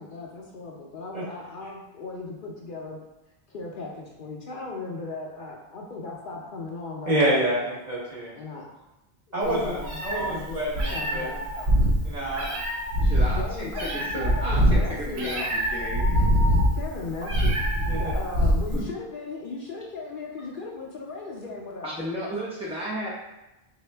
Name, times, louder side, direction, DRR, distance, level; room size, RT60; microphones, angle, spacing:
voice 1, 0.0-3.0 3.5-7.7 8.3-8.7 9.4-10.6 10.9-11.5 13.4-15.5 16.7-22.0, left 3 dB, 60° left, -2 dB, 0.7 m, -37 dB
voice 2, 7.1-8.4 9.3-11.3 12.0-12.5 17.9-18.1, right 1 dB, 45° right, -7 dB, 1.3 m, -27 dB
Meow, 9.4-18.8, equal, 85° right, 1.1 m, -24 dB
voice 3, 13.0-13.7 13.9-16.1 18.7-18.9 21.8-23.1, equal, 10° right, -7 dB, 0.3 m, -33 dB
3.9 x 2.7 x 3.3 m, 0.97 s
omnidirectional pair, 1.1 m